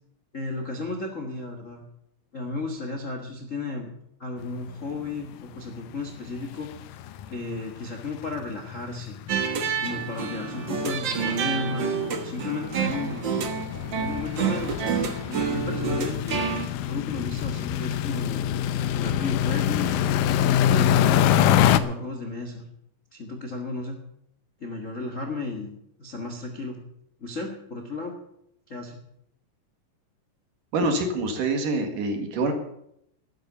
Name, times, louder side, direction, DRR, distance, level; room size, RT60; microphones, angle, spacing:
voice 1, 0.3-1.8 2.3-3.9 4.2-6.8 7.3-9.2 9.8-13.2 13.9-14.8 15.3-16.4 16.9-18.5 18.9-20.0 20.6-22.6 23.1-24.0 24.6-25.7 26.0-26.8 27.2-28.1 28.7-29.0, left 3 dB, 45° left, 3 dB, 1.0 m, -34 dB
sound 1, 4.7-4.8 5.0-5.3 5.6-5.7 5.9-21.8, left 10 dB, 75° left, 2.2 m, -26 dB
sound 2, 9.3-16.7, right 7 dB, 90° right, 1.0 m, -28 dB
voice 2, 30.7-32.5, right 2 dB, 65° right, 5 dB, 3.2 m, -25 dB
13.0 x 9.2 x 8.3 m, 0.75 s
omnidirectional pair, 4.3 m